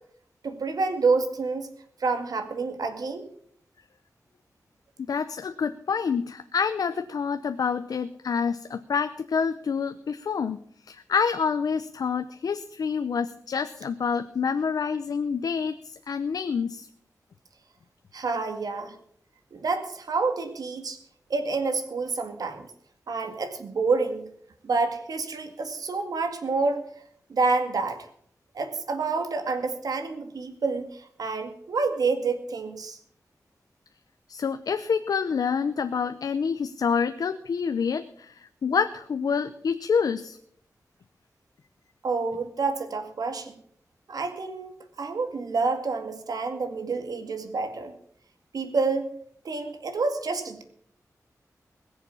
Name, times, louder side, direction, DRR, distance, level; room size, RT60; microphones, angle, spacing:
voice 1, 0.4-1.7 2.0-3.3 18.1-19.0 19.5-21.0 21.3-22.7 23.1-24.3 24.6-26.9 27.3-28.1 28.5-33.0 42.0-43.5 44.1-47.9 48.5-49.1 49.4-50.6, right 4 dB, 85° right, 7 dB, 2.0 m, -28 dB
voice 2, 5.1-10.6 10.9-16.9 34.3-40.4, left 6 dB, 85° left, 9 dB, 0.7 m, -27 dB
21.0 x 7.2 x 7.1 m, 0.65 s
wide cardioid pair, 105°, 6 cm